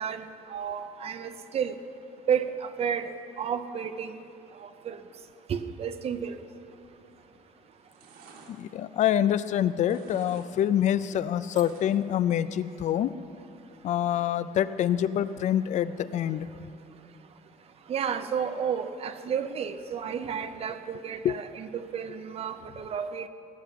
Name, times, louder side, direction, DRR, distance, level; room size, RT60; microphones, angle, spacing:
voice 1, 0.0-1.7 2.3-3.1 3.4-4.1 4.6-5.0 5.5-6.3 17.9-23.3, right 7 dB, 40° right, 10 dB, 0.7 m, -31 dB
sound 1, 7.0-7.4 7.7-9.5 9.8-10.5 10.8-12.2 12.5-12.6, right 3 dB, 85° right, 2.0 m, -52 dB
voice 2, 8.5-13.1 13.8-16.5 21.2-21.4, left 10 dB, 50° left, 15 dB, 0.4 m, -26 dB
17.5 x 7.0 x 9.2 m, 2.8 s
cardioid pair, 165°, 15 cm